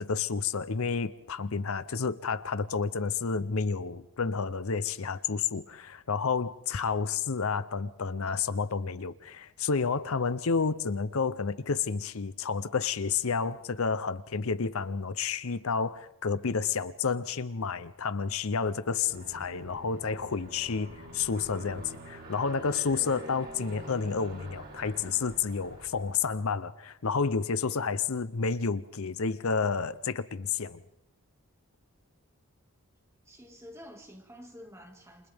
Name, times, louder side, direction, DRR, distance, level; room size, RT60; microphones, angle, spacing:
voice 1, 0.0-30.8, left 5 dB, 70° left, 0.7 m, -30 dB
Aircraft, 19.1-26.4, right 1 dB, 45° right, 6.9 m, -46 dB
voice 2, 33.3-35.3, equal, 10° right, 2.1 m, -49 dB
28.5 x 28.0 x 3.6 m
head